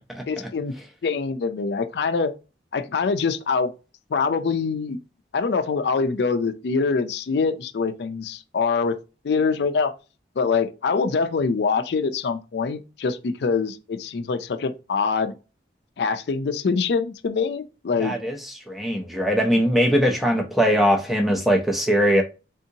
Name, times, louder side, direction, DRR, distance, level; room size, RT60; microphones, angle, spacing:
voice 1, 0.3-0.7 1.0-2.3 2.7-3.7 4.1-5.0 5.3-9.0 9.2-9.9 10.4-15.3 16.0-18.1, left 5 dB, 65° left, 0.4 m, -24 dB
voice 2, 18.0-18.4 18.7-22.2, equal, ahead, 0.4 m, -20 dB
3.6 x 2.7 x 2.7 m
head